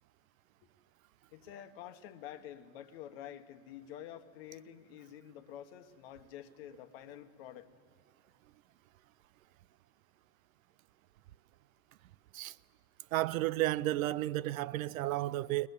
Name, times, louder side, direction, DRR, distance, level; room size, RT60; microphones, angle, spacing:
voice 1, 1.3-7.7, left 10 dB, 45° left, 1.2 m, -48 dB
voice 2, 13.1-15.7, right 16 dB, 75° right, 0.6 m, -32 dB
21.0 x 20.0 x 8.1 m
supercardioid pair, 165°, 41 cm